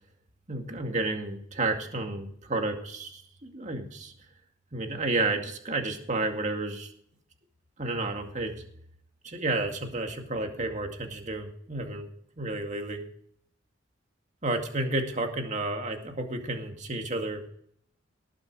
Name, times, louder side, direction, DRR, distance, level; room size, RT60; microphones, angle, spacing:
voice 1, 0.5-4.1 4.7-6.9 7.8-8.5 9.2-12.1 12.4-13.0 14.4-17.5, right 2 dB, 40° right, 4 dB, 2.2 m, -31 dB
18.5 x 7.4 x 4.9 m, 0.65 s
head